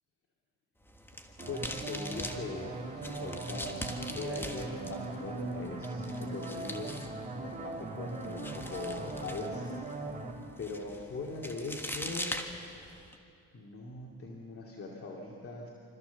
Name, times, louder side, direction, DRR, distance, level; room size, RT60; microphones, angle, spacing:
sound 1, 0.8-13.2, left 1 dB, 5° left, 1.6 m, -43 dB
voice 1, 1.4-3.8 4.1-6.9 7.4-9.7 10.6-12.3 12.8-13.1 13.5-15.7, left 3 dB, 50° left, -2 dB, 2.5 m, -41 dB
sound 2, 1.4-10.3, right 2 dB, 25° right, 3.1 m, -39 dB
25.5 x 14.5 x 7.1 m, 2.6 s
cardioid pair, 90°, 30 cm